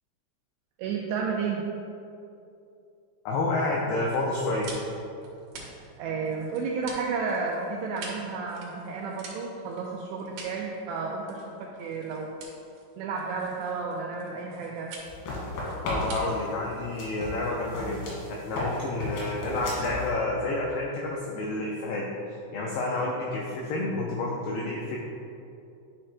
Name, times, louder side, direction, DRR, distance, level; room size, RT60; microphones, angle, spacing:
voice 1, 0.8-1.6 6.0-12.3 13.0-14.9, right 4 dB, 85° right, -2 dB, 2.4 m, -32 dB
voice 2, 3.3-4.7 15.8-22.1 22.5-25.0, left 2 dB, 85° left, -2 dB, 2.2 m, -29 dB
sound 1, 4.1-18.8, right 4 dB, 70° right, 2.8 m, -47 dB
sound 2, 15.1-16.5 17.0-20.1, left 1 dB, 65° left, 3.6 m, -34 dB
10.0 x 6.6 x 2.2 m, 2.7 s
omnidirectional pair, 5.4 m